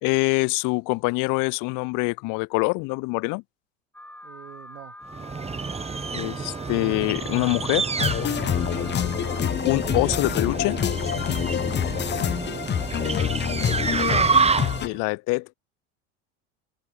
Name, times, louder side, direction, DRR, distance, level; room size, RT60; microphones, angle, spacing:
voice 1, 0.0-3.4 6.1-7.9 9.6-10.8 14.8-15.5, left 28 dB, 60° left, 0.9 m, -24 dB
Alarm, 3.9-9.5, left 1 dB, 5° left, 6.6 m, -44 dB
voice 2, 4.2-5.0 8.6-8.8 11.7-13.2 13.6-14.4, right 19 dB, 80° right, 3.7 m, -43 dB
sound 1, 5.1-15.0, right 4 dB, 15° right, 1.5 m, -28 dB
sound 2, 8.0-14.9, left 9 dB, 30° left, 0.9 m, -26 dB
hypercardioid pair, 85°, 36 cm